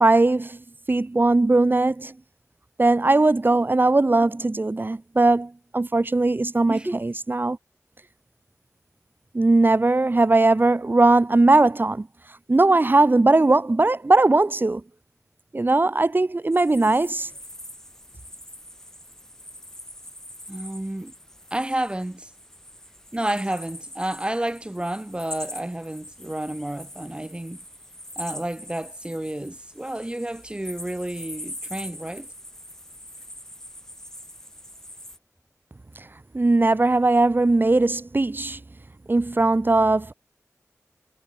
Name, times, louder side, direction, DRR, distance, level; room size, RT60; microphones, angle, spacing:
voice 1, 0.0-2.1 2.8-7.6 9.3-12.1 12.5-14.8 15.5-17.3 36.3-38.6 39.1-40.1, right 2 dB, 35° right, 1.0 m, -19 dB
voice 2, 6.7-7.0 20.5-21.1 21.5-22.3 23.1-27.6 28.2-32.3, right 1 dB, 20° right, 3.2 m, -30 dB
sound 1, 16.5-35.2, equal, 10° left, 3.2 m, -43 dB
wide cardioid pair, 70°, 6 cm